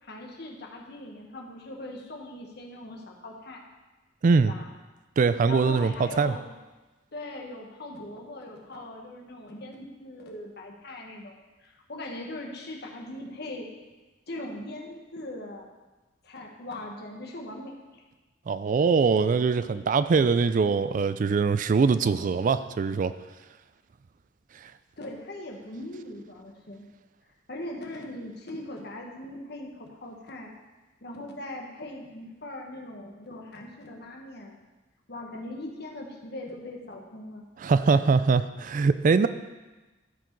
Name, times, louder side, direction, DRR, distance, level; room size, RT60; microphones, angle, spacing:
voice 1, 0.0-3.6 4.4-4.7 5.4-6.5 7.1-13.7 14.3-15.7 16.2-18.0 25.0-26.9 27.5-30.5 31.0-34.6 35.1-37.4, left 1 dB, 60° left, 0 dB, 1.4 m, -40 dB
voice 2, 5.2-6.3 18.5-23.1 37.6-39.3, right 4 dB, 45° right, 13 dB, 0.3 m, -22 dB
12.5 x 4.9 x 4.6 m, 1.2 s
head